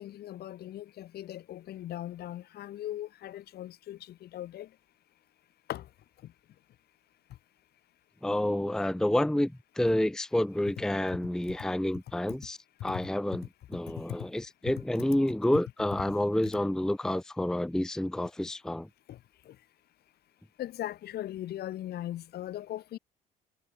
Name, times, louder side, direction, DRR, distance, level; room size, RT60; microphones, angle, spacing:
voice 1, 0.0-4.7 5.7-5.9 14.1-14.2 19.1-19.2 19.5-19.6 20.6-23.0, left 13 dB, 60° left, 1.9 m, -39 dB
voice 2, 8.2-18.9, left 1 dB, 5° left, 0.7 m, -29 dB
hypercardioid pair, 55°, 19 cm